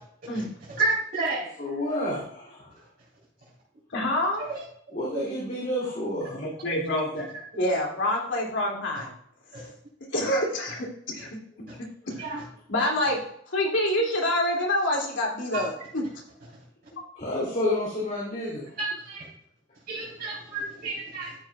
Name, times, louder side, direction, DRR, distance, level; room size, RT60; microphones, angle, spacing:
voice 1, 0.8-1.5 4.5-4.6 9.5-9.7 12.2-12.4 15.5-15.6 18.8-19.2 19.9-21.4, right 3 dB, 50° right, -7 dB, 3.9 m, -30 dB
voice 2, 1.6-2.7 4.9-6.4 17.2-18.7, left 1 dB, 45° left, -5 dB, 2.7 m, -29 dB
voice 3, 3.9-4.5 6.3-9.1 10.1-11.3 12.1-12.2 12.7-13.2 13.5-16.0 16.9-17.0, left 1 dB, 80° left, -1 dB, 2.5 m, -27 dB
13.0 x 7.4 x 2.4 m, 0.68 s
head